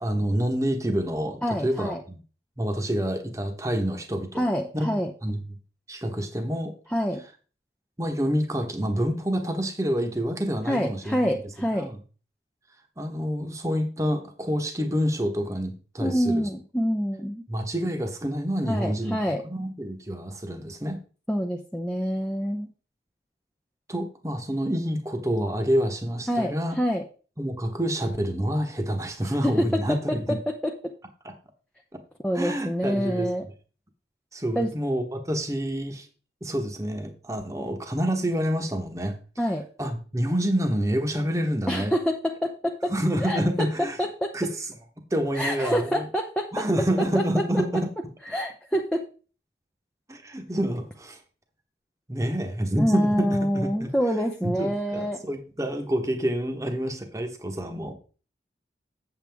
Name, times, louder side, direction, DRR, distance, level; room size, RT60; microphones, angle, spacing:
voice 1, 0.0-2.2 2.6-4.4 4.7-4.9 5.2-5.4 5.9-6.7 8.0-11.2 11.7-12.0 13.0-16.5 17.5-19.2 19.4-21.0 23.9-26.8 27.4-30.4 31.2-31.3 32.3-33.3 34.3-36.1 36.4-39.2 39.8-41.9 42.9-44.0 44.3-44.7 45.1-46.1 46.5-47.9 50.1-51.2 52.1-53.3 53.5-53.9 54.4-57.9, equal, 20° right, 4 dB, 1.1 m, -27 dB
voice 2, 1.4-2.0 4.3-5.1 6.9-7.2 10.7-11.9 16.0-17.4 18.7-19.4 21.3-22.7 26.3-27.0 29.4-30.9 32.2-33.5 34.5-34.7 39.4-39.7 41.7-42.9 43.2-43.7 44.0-44.3 45.3-46.7 47.1-47.8 48.3-49.0 52.8-55.2, equal, 5° left, 1 dB, 0.6 m, -26 dB
8.1 x 7.8 x 3.5 m, 0.37 s
head